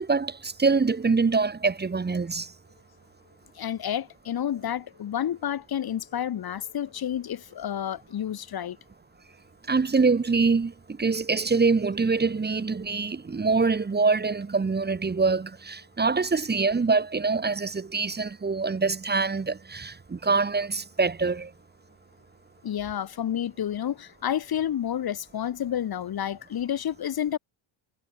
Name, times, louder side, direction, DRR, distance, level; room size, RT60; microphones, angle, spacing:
voice 1, 0.0-2.5 9.7-21.5, right 4 dB, 20° right, 2.2 m, -25 dB
voice 2, 3.6-8.8 12.3-12.4 22.6-27.4, left 10 dB, 45° left, 2.6 m, -30 dB
cardioid pair, 145°, 50 cm